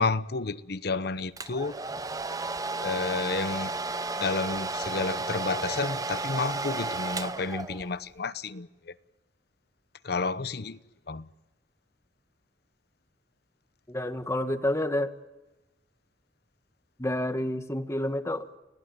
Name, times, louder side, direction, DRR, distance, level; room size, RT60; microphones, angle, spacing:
voice 1, 0.0-1.7 2.8-3.7 4.2-8.9 10.0-10.8 11.1-11.3, left 3 dB, 65° left, 0.9 m, -31 dB
Domestic sounds home sounds, 1.4-8.0, right 3 dB, 20° right, 0.8 m, -33 dB
voice 2, 13.9-15.1 17.0-18.6, left 1 dB, 15° left, 1.7 m, -29 dB
29.5 x 19.0 x 9.5 m
head